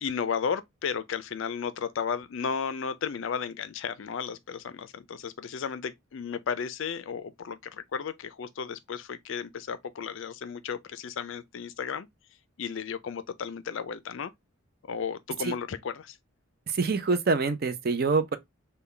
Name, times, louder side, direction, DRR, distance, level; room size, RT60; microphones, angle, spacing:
voice 1, 0.0-12.1 12.6-14.3 14.9-16.2, left 6 dB, 60° left, 0.4 m, -34 dB
voice 2, 16.7-18.4, right 4 dB, 45° right, 0.5 m, -26 dB
3.8 x 2.2 x 3.2 m
head